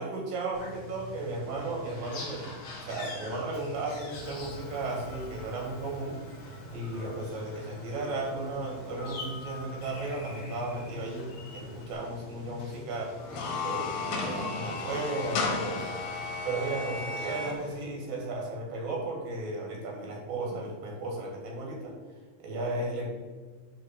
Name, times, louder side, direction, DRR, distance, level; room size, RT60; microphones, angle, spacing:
voice 1, 0.0-6.2 6.7-13.2 13.6-15.9 16.4-21.9 22.4-23.1, right 2 dB, 90° right, -1 dB, 3.6 m, -35 dB
sound 1, 0.5-17.8, left 1 dB, 55° left, 2.1 m, -44 dB
Motor vehicle (road) / Engine, 3.5-11.9, equal, 40° left, 2.9 m, -50 dB
sound 2, 13.2-17.6, left 4 dB, 85° left, 3.1 m, -33 dB
11.0 x 3.9 x 4.3 m, 1.4 s
omnidirectional pair, 3.9 m